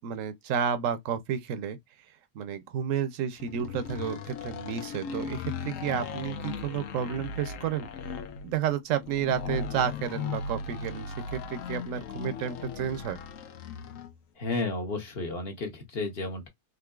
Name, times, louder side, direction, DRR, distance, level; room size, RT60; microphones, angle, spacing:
voice 1, 0.0-1.8 2.3-7.9 8.4-13.2, right 8 dB, 80° right, 1.0 m, -31 dB
sound 1, 3.4-14.2, left 5 dB, 85° left, 1.0 m, -37 dB
voice 2, 14.3-16.5, left 3 dB, 50° left, 1.1 m, -32 dB
3.7 x 2.7 x 2.3 m
omnidirectional pair, 1.3 m